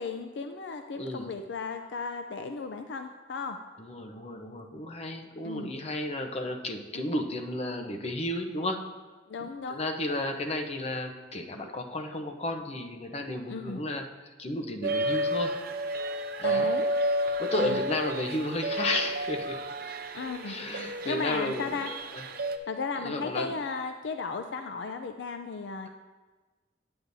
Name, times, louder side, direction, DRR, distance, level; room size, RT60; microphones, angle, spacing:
voice 1, 0.0-3.6 5.4-5.7 6.9-7.0 9.3-9.9 13.5-13.8 16.4-16.9 17.5-17.8 20.1-20.5 21.1-21.9 22.7-25.9, left 4 dB, 65° left, 7 dB, 0.4 m, -35 dB
voice 2, 0.9-1.3 3.8-8.8 9.7-15.5 16.4-16.7 17.4-19.6 20.4-21.7 22.1-22.2 23.0-23.5, left 1 dB, 35° left, 4 dB, 0.8 m, -33 dB
sound 1, 14.8-22.6, right 1 dB, 55° right, 0.6 m, -31 dB
9.5 x 8.7 x 2.7 m, 1.3 s
head